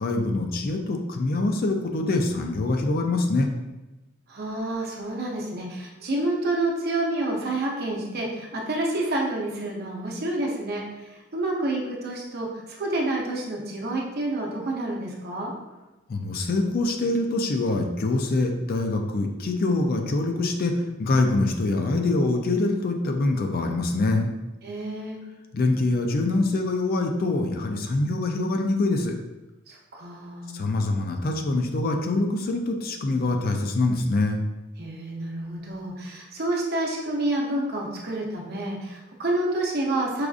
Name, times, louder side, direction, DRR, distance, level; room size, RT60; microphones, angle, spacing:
voice 1, 0.0-3.5 16.1-24.3 25.5-29.1 30.5-34.4, left 2 dB, 50° left, 4 dB, 0.4 m, -24 dB
voice 2, 4.3-15.5 24.6-25.2 29.7-30.5 34.8-40.3, right 2 dB, 50° right, -2 dB, 0.7 m, -29 dB
4.8 x 2.5 x 2.4 m, 1.1 s
head